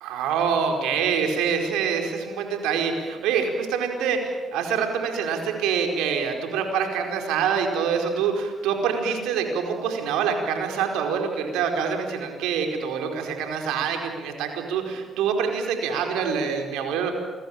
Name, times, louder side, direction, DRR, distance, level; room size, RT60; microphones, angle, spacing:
voice 1, 0.0-17.1, right 6 dB, 75° right, 4 dB, 4.8 m, -25 dB
28.5 x 23.0 x 8.9 m, 1.5 s
hypercardioid pair, 50°, 0 cm